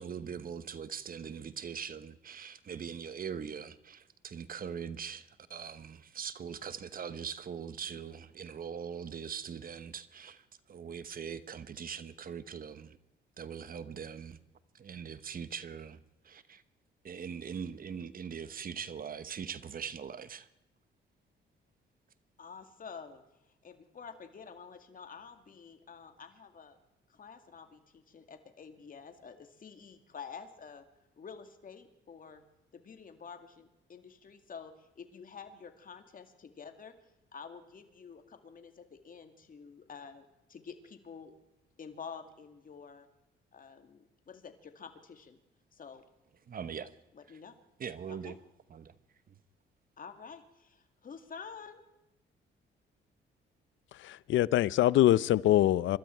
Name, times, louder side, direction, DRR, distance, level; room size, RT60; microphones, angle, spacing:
voice 1, 0.0-13.0 13.4-14.4 14.7-16.6 17.0-20.5 46.5-46.9 47.3-47.4 47.8-48.4 48.7-48.9 49.3-49.4, right 7 dB, 45° right, 1.1 m, -41 dB
voice 2, 22.4-23.2 23.6-26.8 27.1-30.9 31.2-32.4 32.7-37.0 37.3-41.3 41.8-43.1 43.5-45.4 45.7-46.0 47.1-47.5 48.1-48.4 50.0-51.8, left 6 dB, 45° left, 2.2 m, -49 dB
voice 3, 54.0-56.0, left 13 dB, 75° left, 0.5 m, -24 dB
25.5 x 12.5 x 4.5 m
cardioid pair, 90°, 20 cm